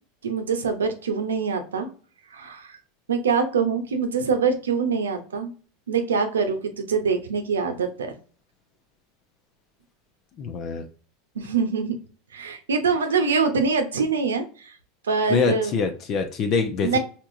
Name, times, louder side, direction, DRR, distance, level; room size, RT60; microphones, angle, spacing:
voice 1, 0.2-1.9 2.3-2.8 3.1-5.5 5.9-8.1 11.3-12.0 12.3-14.7 15.0-15.7 16.8-17.0, right 5 dB, 90° right, 6 dB, 0.7 m, -24 dB
voice 2, 10.4-10.8 15.3-17.0, left 5 dB, 45° left, 5 dB, 0.7 m, -24 dB
4.5 x 2.9 x 2.6 m, 0.40 s
hypercardioid pair, 95°, 0 cm